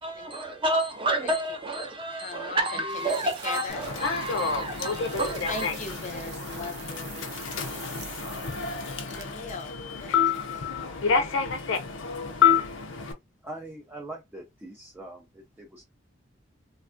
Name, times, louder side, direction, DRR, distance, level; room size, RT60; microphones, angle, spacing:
voice 1, 0.0-5.7, right 1 dB, 30° right, 0.8 m, -30 dB
voice 2, 2.2-3.1 3.4-3.8 5.5-7.9 9.1-10.2 10.5-10.7, left 3 dB, 40° left, 0.5 m, -39 dB
sound 1, 2.9-9.5, right 7 dB, 60° right, 0.6 m, -45 dB
Human voice / Subway metro underground, 3.7-13.1, left 6 dB, 90° left, 0.5 m, -28 dB
voice 3, 13.4-15.8, right 1 dB, 10° right, 0.4 m, -42 dB
3.3 x 2.3 x 2.5 m
head